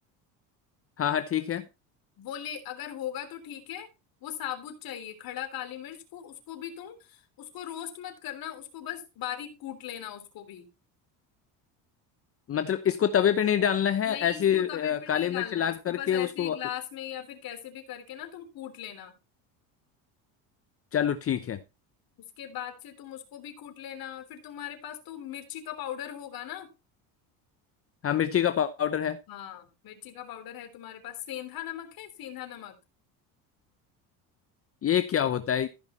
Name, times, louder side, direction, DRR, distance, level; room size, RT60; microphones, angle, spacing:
voice 1, 1.0-1.6 12.5-16.6 20.9-21.6 28.0-29.2 34.8-35.7, left 9 dB, 35° left, 0.8 m, -26 dB
voice 2, 2.2-3.9 4.2-10.7 14.0-19.1 22.4-26.7 29.3-32.7, left 11 dB, 55° left, 3.4 m, -39 dB
15.0 x 5.7 x 4.4 m
supercardioid pair, 100°, 42 cm